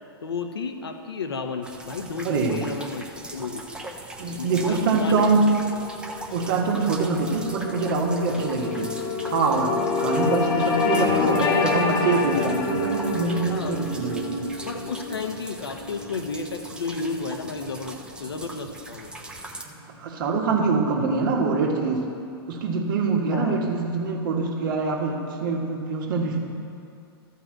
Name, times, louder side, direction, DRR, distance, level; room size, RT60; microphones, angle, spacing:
voice 1, 0.2-3.6 4.4-5.3 10.0-10.1 11.2-12.0 13.5-13.8 14.7-19.1 23.3-23.6, left 4 dB, 75° left, 6 dB, 1.0 m, -32 dB
sound 1, 1.6-19.6, right 2 dB, 5° right, 0.8 m, -40 dB
voice 2, 2.2-2.6 4.2-5.5 6.3-9.0 9.3-14.5 20.0-22.1 22.5-26.5, right 4 dB, 55° right, 0 dB, 1.7 m, -24 dB
sound 2, 5.5-17.9, left 4 dB, 40° left, 1.3 m, -28 dB
13.0 x 5.6 x 7.7 m, 2.5 s
figure-of-eight pair, 105°, 13 cm